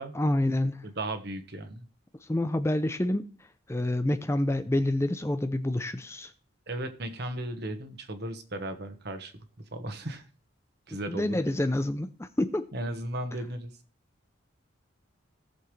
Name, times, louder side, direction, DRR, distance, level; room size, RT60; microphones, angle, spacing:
voice 1, 0.1-0.8 2.3-3.3 3.7-6.3 11.1-12.6, left 1 dB, 15° left, 9 dB, 0.5 m, -27 dB
voice 2, 0.8-1.8 6.7-9.3 9.7-10.2 10.9-11.4 12.7-13.7, right 1 dB, 55° right, 7 dB, 1.4 m, -35 dB
17.5 x 7.0 x 3.3 m, 0.39 s
head